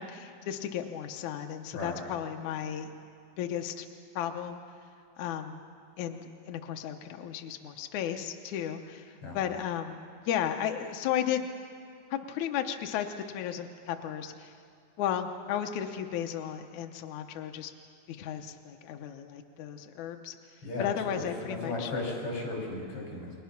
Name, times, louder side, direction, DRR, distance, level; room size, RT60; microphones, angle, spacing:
voice 1, 0.0-2.9 3.4-3.9 4.1-4.6 5.2-5.6 6.0-11.5 12.1-13.1 13.3-14.5 15.0-17.7 18.1-20.3 20.8-21.9, left 9 dB, 80° left, 5 dB, 1.7 m, -34 dB
voice 2, 20.6-23.3, left 2 dB, 35° left, -1 dB, 6.2 m, -35 dB
29.0 x 23.0 x 5.9 m, 2.4 s
omnidirectional pair, 4.7 m